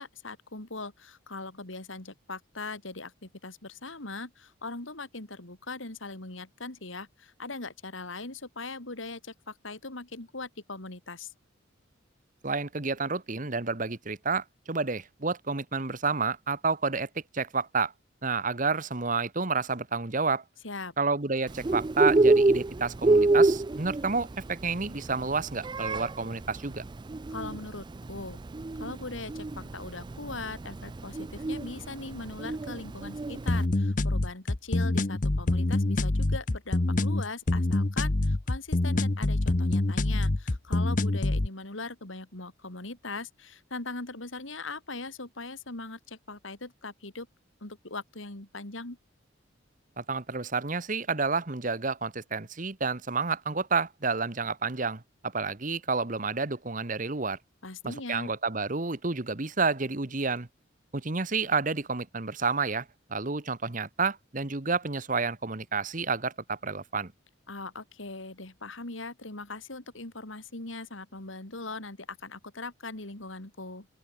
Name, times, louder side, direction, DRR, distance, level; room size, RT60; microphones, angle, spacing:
voice 1, 0.0-11.3 20.6-20.9 27.3-28.4 28.8-47.3 47.6-49.0 57.6-58.3 67.5-73.9, left 3 dB, 80° left, 3.3 m, -40 dB
voice 2, 12.4-17.9 18.2-20.4 21.0-26.8 50.0-57.4 57.8-60.5 60.9-67.1, right 4 dB, 40° right, 1.3 m, -30 dB
Bird, 21.5-33.6, right 2 dB, 20° right, 0.4 m, -27 dB
sound 1, 33.5-41.5, left 2 dB, 40° left, 0.8 m, -26 dB
open air
head